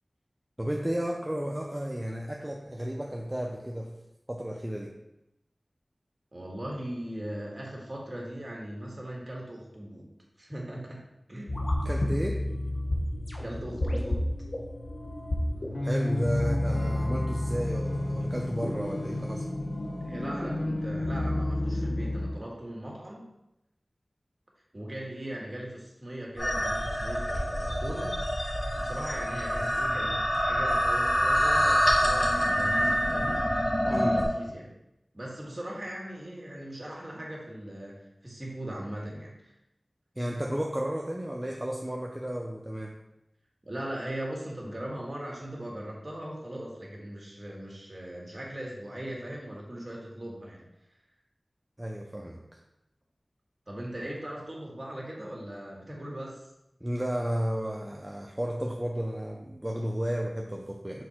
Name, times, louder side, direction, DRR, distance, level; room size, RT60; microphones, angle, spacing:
voice 1, 0.6-4.0 4.3-4.9 11.8-12.4 15.8-19.5 33.9-34.2 40.2-43.0 51.8-52.4 56.8-61.0, equal, 20° right, 0 dB, 0.6 m, -33 dB
voice 2, 6.3-10.1 10.4-11.0 11.3-11.6 13.4-14.2 20.0-23.3 24.7-33.4 33.8-34.8 35.1-38.0 38.2-39.5 43.6-50.6 53.7-56.5, right 1 dB, 40° right, -2 dB, 1.8 m, -39 dB
sound 1, 11.5-22.3, left 1 dB, 80° left, 1.0 m, -30 dB
sound 2, 26.4-34.2, equal, 50° left, 1.7 m, -26 dB
6.3 x 3.7 x 4.4 m, 0.87 s
wide cardioid pair, 50°, 0 cm